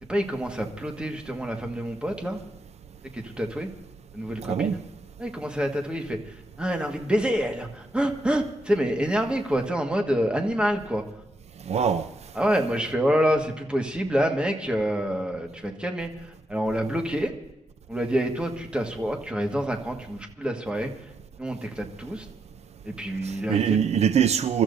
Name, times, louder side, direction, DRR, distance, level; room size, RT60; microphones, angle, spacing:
voice 1, 0.0-2.4 3.1-3.7 4.1-4.8 5.2-11.0 12.3-17.3 17.9-20.9 21.4-22.3 22.8-23.8, equal, 10° right, 1.7 m, -27 dB
voice 2, 4.4-4.8 11.7-12.1 23.2-24.6, right 8 dB, 60° right, 0.5 m, -23 dB
29.0 x 13.5 x 2.7 m
wide cardioid pair, 140°, 13 cm